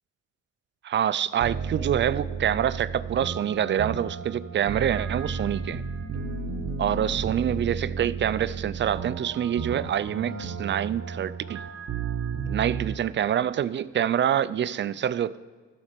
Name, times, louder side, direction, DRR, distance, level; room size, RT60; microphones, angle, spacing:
voice 1, 0.8-5.9 6.8-11.6 12.5-15.4, right 10 dB, 40° right, 17 dB, 0.4 m, -26 dB
sound 1, 1.4-13.0, right 5 dB, 55° right, 1.0 m, -33 dB
13.5 x 5.4 x 6.6 m, 1.5 s
cardioid pair, 90°, 30 cm